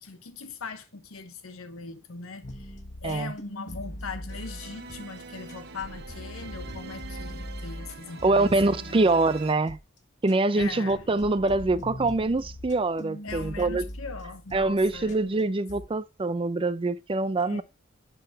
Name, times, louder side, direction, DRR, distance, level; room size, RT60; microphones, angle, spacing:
voice 1, 0.0-9.0 10.5-11.0 13.2-15.2 17.5-17.6, left 4 dB, 85° left, 1.0 m, -40 dB
sound 1, 2.4-5.2 5.5-9.8 10.3-15.4 15.7-15.9, left 1 dB, 35° left, 1.4 m, -41 dB
sound 2, 4.3-9.5, right 4 dB, 55° right, 1.0 m, -44 dB
voice 2, 8.2-9.8 10.2-13.8 14.5-17.6, right 2 dB, 25° right, 0.5 m, -24 dB
11.0 x 4.0 x 4.0 m
head